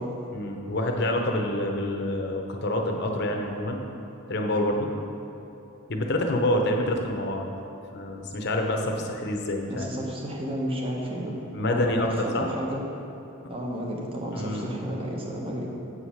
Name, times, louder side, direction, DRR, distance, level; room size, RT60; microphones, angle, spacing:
voice 1, 0.3-3.8 4.3-4.9 5.9-7.5 7.9-9.9 11.5-12.5 14.3-14.7, left 1 dB, 50° left, 2 dB, 0.7 m, -27 dB
voice 2, 9.7-11.4 11.7-12.8 13.5-15.7, equal, 25° right, -1 dB, 0.9 m, -32 dB
8.2 x 4.8 x 5.7 m, 2.9 s
head